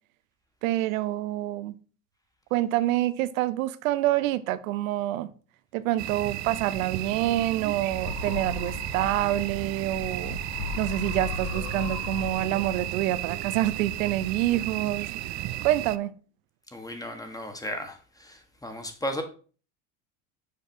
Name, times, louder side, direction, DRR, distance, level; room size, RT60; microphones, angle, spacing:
voice 1, 0.6-1.8 2.5-5.3 5.7-10.4 10.8-15.1 15.6-16.1, right 14 dB, 85° right, 0.7 m, -27 dB
sound 1, 6.0-16.0, right 14 dB, 45° right, 0.5 m, -34 dB
sound 2, 7.8-13.1, left 6 dB, 65° left, 0.9 m, -37 dB
voice 2, 16.7-19.2, equal, 10° left, 1.6 m, -35 dB
7.0 x 4.8 x 4.6 m
supercardioid pair, 90°, 39 cm